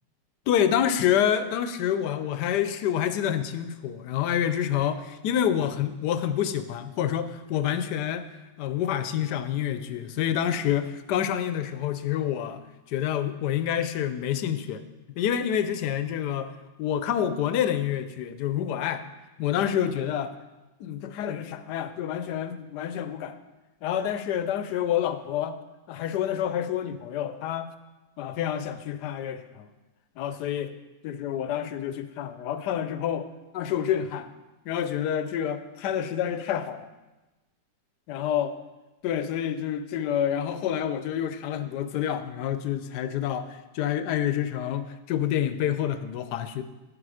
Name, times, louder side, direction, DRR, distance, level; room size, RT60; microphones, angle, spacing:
voice 1, 0.5-8.2 8.6-14.8 15.1-16.5 16.8-19.1 19.4-20.3 20.8-23.3 23.8-25.6 25.9-27.7 28.2-29.7 30.2-30.7 31.0-33.3 33.5-34.3 34.7-36.9 38.1-38.6 39.0-46.6, left 10 dB, 70° left, 11 dB, 1.2 m, -28 dB
10.0 x 7.6 x 4.8 m, 1.1 s
omnidirectional pair, 1.9 m